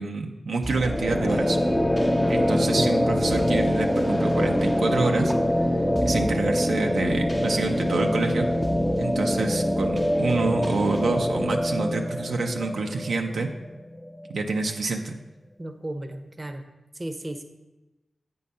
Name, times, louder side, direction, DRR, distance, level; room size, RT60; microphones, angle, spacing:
voice 1, 0.0-1.6 2.3-5.3 5.7-5.8 6.0-8.5 9.0-13.5 14.3-15.2, right 3 dB, 80° right, 2 dB, 0.5 m, -27 dB
sound 1, 0.6-14.3, equal, 15° left, 0.6 m, -24 dB
voice 2, 2.2-2.7 15.6-16.6 17.0-17.4, right 1 dB, 35° right, 7 dB, 0.7 m, -35 dB
8.4 x 3.8 x 5.4 m, 1.0 s
cardioid pair, 50°, 0 cm